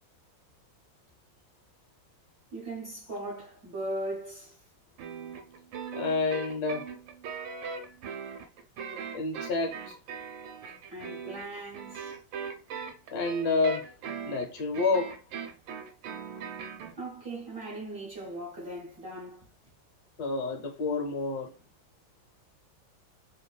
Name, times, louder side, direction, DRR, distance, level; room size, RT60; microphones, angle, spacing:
voice 1, 2.5-4.6 10.9-12.1 17.0-19.7, right 1 dB, 50° right, 0.7 m, -39 dB
sound 1, 5.0-16.9, right 6 dB, 85° right, 1.3 m, -40 dB
voice 2, 5.9-6.9 9.1-10.0 13.1-13.9 14.2-15.2 20.2-21.5, left 3 dB, 65° left, 1.1 m, -29 dB
3.1 x 2.1 x 2.3 m
omnidirectional pair, 2.0 m